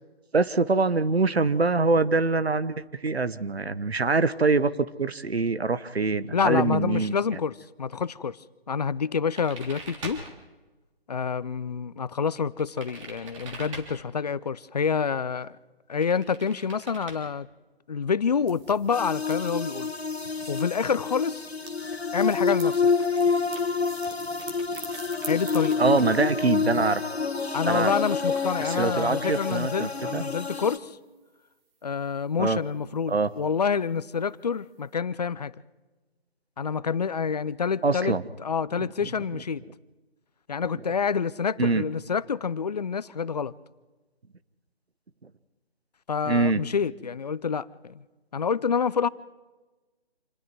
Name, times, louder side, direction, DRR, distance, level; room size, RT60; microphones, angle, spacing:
voice 1, 0.3-4.7 5.0-7.4 25.8-27.1 27.6-27.9 28.6-30.2 32.4-32.6 33.1-33.3 37.8-38.2 38.8-39.4 41.6-41.9 46.3-46.6, right 3 dB, 80° right, 1.3 m, -24 dB
voice 2, 6.3-8.4 8.7-10.2 11.1-15.6 15.9-17.5 17.9-19.9 20.5-21.4 22.1-22.8 25.3-25.8 27.5-31.0 31.8-35.5 36.6-39.6 40.5-43.5 46.1-48.0 48.3-49.1, left 6 dB, 40° left, 0.6 m, -27 dB
sound 1, 9.4-10.3 12.6-13.9 16.0-17.2 21.2-21.3 21.6-21.8 22.2-22.5 22.9-26.3, right 3 dB, 30° right, 3.5 m, -43 dB
sound 2, 18.5-27.1, right 4 dB, 10° right, 1.6 m, -47 dB
sound 3, 18.9-30.8, left 5 dB, 85° left, 1.7 m, -28 dB
27.0 x 20.5 x 4.7 m
figure-of-eight pair, 155°, 31 cm